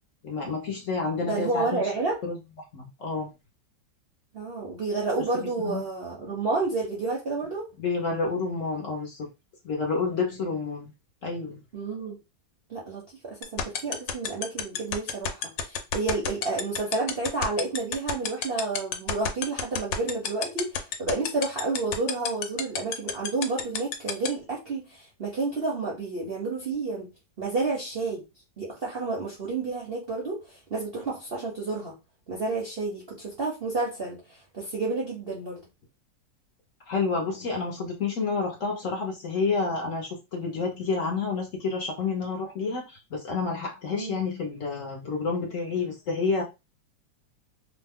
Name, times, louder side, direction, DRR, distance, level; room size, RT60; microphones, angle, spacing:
voice 1, 0.2-1.8 2.2-2.4 2.7-3.3 5.6-5.8 7.8-9.3 9.6-10.9 11.2-11.6 36.9-46.4, left 4 dB, 60° left, 0 dB, 0.9 m, -29 dB
voice 2, 1.2-2.2 4.3-7.6 11.7-12.2 12.7-27.1 27.4-28.2 28.6-30.4 30.7-32.0 32.3-35.6 43.9-44.2, right 3 dB, 50° right, -3 dB, 0.7 m, -30 dB
sound 1, 13.4-24.3, left 9 dB, 85° left, 1.3 m, -27 dB
3.0 x 2.2 x 3.5 m, 0.25 s
omnidirectional pair, 2.0 m